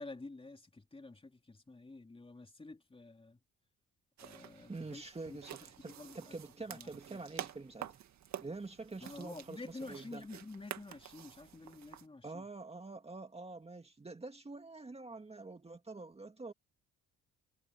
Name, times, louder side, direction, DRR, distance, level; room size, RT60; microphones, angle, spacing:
voice 1, 0.0-3.4 4.2-5.0 5.3-6.3 6.7-7.2 9.0-12.4, left 3 dB, 20° left, 3.2 m, -50 dB
sound 1, 4.2-12.1, right 10 dB, 65° right, 2.0 m, -49 dB
voice 2, 4.7-7.9 8.4-10.2 12.2-16.5, right 3 dB, 20° right, 2.2 m, -46 dB
cardioid pair, 90°, 30 cm